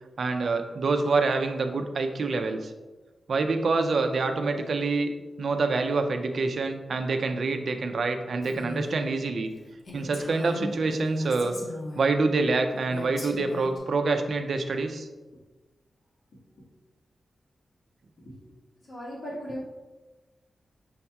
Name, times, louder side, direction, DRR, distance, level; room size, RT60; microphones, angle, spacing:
voice 1, 0.2-2.7 3.3-9.5 9.9-11.5 12.0-15.1, right 3 dB, 55° right, 6 dB, 0.4 m, -26 dB
Female speech woman speaking, 8.4-9.0 9.4-9.5 9.8-12.1 12.9-13.8, left 1 dB, 50° left, 0.8 m, -39 dB
voice 2, 18.9-19.7, equal, 75° left, -8 dB, 1.4 m, -36 dB
6.3 x 2.8 x 2.2 m, 1.2 s
wide cardioid pair, 145°, 0 cm